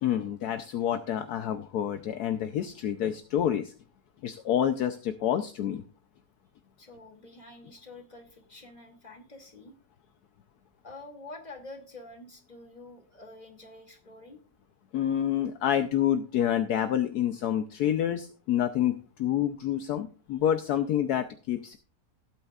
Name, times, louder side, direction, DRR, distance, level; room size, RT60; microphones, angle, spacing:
voice 1, 0.0-3.7 4.2-5.8 14.9-21.8, left 10 dB, 70° left, 8 dB, 1.2 m, -28 dB
voice 2, 6.8-9.7 10.8-14.4, left 2 dB, 25° left, 2 dB, 2.6 m, -47 dB
17.0 x 9.0 x 2.4 m, 0.38 s
omnidirectional pair, 1.8 m